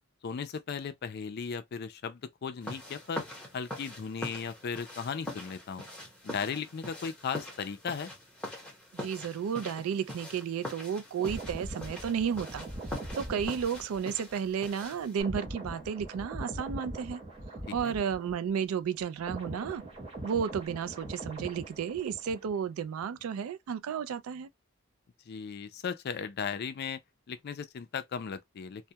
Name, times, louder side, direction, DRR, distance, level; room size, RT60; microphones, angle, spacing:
voice 1, 0.2-3.2 3.5-5.9 6.2-8.1 17.7-18.0 25.3-27.0 27.3-28.9, left 6 dB, 50° left, 0.4 m, -36 dB
sound 1, 2.6-15.2, left 1 dB, 5° left, 0.8 m, -43 dB
voice 2, 8.9-12.7 13.2-17.2 17.7-19.8 20.2-24.5, right 7 dB, 90° right, 0.3 m, -32 dB
sound 2, 11.2-18.7 19.0-22.7 23.0-23.2, right 1 dB, 30° right, 0.8 m, -42 dB
2.2 x 2.1 x 2.7 m
head